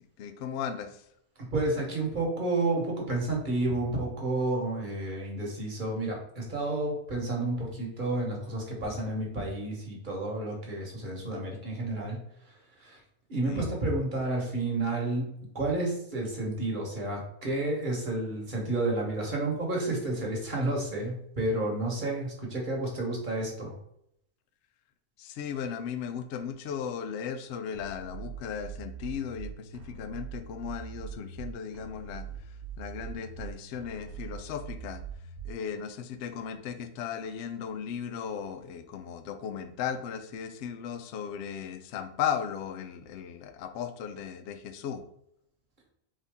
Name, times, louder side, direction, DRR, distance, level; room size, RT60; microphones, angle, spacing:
voice 1, 0.2-1.0 13.4-13.6 25.2-35.0 35.4-45.0, left 8 dB, 65° left, 8 dB, 0.7 m, -36 dB
voice 2, 1.4-12.2 12.5-13.0 13.3-23.8, right 2 dB, 35° right, -1 dB, 1.2 m, -31 dB
sound 1, 27.7-35.7, right 7 dB, 80° right, 1.2 m, -42 dB
4.1 x 3.6 x 3.5 m, 0.74 s
omnidirectional pair, 1.6 m